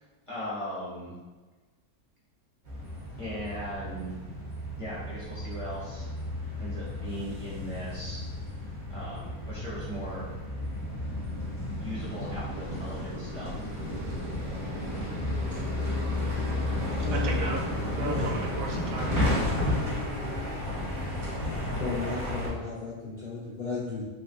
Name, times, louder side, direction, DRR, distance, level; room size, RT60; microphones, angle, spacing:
voice 1, 0.3-1.1 3.2-4.1 4.8-6.1 6.6-8.2 8.9-10.2 11.8-13.5, equal, 25° left, -8 dB, 0.8 m, -38 dB
sound 1, 2.7-22.5, left 1 dB, 40° right, 0.8 m, -32 dB
voice 2, 16.7-17.6 18.0-19.4, right 4 dB, 75° right, 0 dB, 1.0 m, -37 dB
voice 3, 18.0-18.3 21.8-24.1, left 3 dB, 85° left, -8 dB, 0.4 m, -34 dB
3.1 x 2.6 x 2.5 m, 1.3 s
omnidirectional pair, 1.6 m